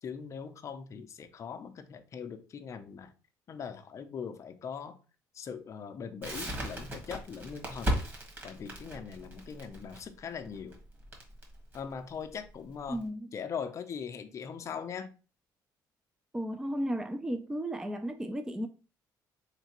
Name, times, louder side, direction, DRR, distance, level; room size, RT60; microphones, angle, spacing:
voice 1, 0.0-3.1 3.5-5.0 5.3-8.0 8.4-10.8 11.7-13.0 13.3-15.1, left 6 dB, 40° left, 0.5 m, -41 dB
Crackle, 6.2-13.0, equal, 30° right, 1.4 m, -37 dB
voice 2, 12.9-13.3 16.3-18.7, equal, 10° right, 0.4 m, -34 dB
3.7 x 3.2 x 2.9 m
cardioid pair, 110°, 8 cm